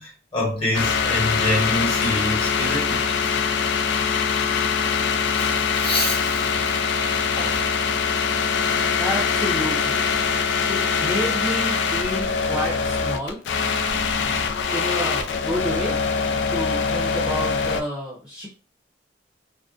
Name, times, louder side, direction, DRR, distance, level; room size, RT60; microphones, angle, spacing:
voice 1, 0.0-3.0 5.4-7.6, left 1 dB, 30° left, 1.2 m, -27 dB
sound 1, 0.7-17.8, left 5 dB, 75° left, 0.3 m, -23 dB
voice 2, 9.0-10.1 10.7-13.4 14.7-16.0 16.5-18.5, left 1 dB, 5° right, 0.6 m, -29 dB
2.5 x 2.1 x 2.4 m
head